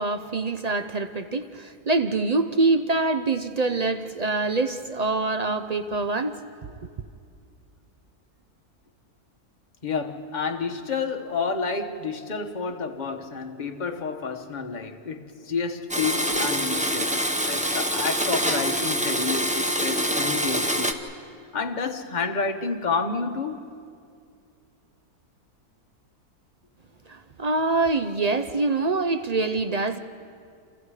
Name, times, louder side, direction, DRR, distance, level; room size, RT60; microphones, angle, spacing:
voice 1, 0.0-6.3 27.1-30.0, right 3 dB, 55° right, 0.4 m, -25 dB
voice 2, 9.8-20.9 21.5-23.7, left 5 dB, 30° left, 1.2 m, -30 dB
Domestic sounds home sounds, 15.9-20.9, equal, 5° right, 0.9 m, -25 dB
28.5 x 28.0 x 4.9 m
omnidirectional pair, 1.7 m